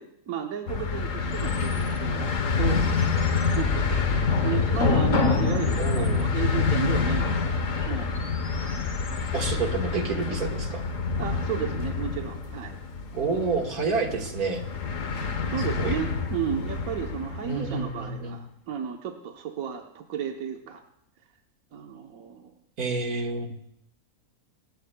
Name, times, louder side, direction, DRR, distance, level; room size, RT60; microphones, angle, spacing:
voice 1, 0.0-2.8 3.5-8.1 11.2-12.8 15.5-20.8 21.7-22.5, right 8 dB, 70° right, 3 dB, 1.3 m, -33 dB
sound 1, 0.7-17.9, left 4 dB, 60° left, 1.4 m, -27 dB
sound 2, 1.3-9.3, left 2 dB, 45° left, 2.0 m, -42 dB
voice 2, 5.8-6.3 9.3-10.9 13.1-14.7 15.8-16.0 17.4-18.4 22.8-23.5, right 4 dB, 90° right, 2 dB, 2.3 m, -29 dB
27.0 x 14.5 x 2.3 m, 0.77 s
omnidirectional pair, 1.5 m